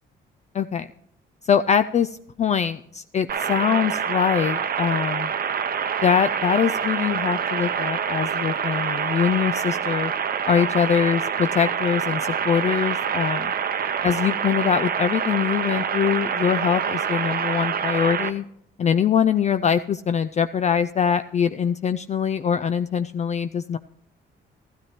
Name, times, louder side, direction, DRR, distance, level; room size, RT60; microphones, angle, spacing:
voice 1, 0.5-0.9 1.4-5.3 6.0-10.1 10.4-13.5 14.0-18.4 18.8-23.8, left 7 dB, 35° left, 11 dB, 0.3 m, -23 dB
sound 1, 3.3-18.3, right 7 dB, 50° right, 0.8 m, -26 dB
14.0 x 12.5 x 3.0 m, 0.72 s
cardioid pair, 90°, 20 cm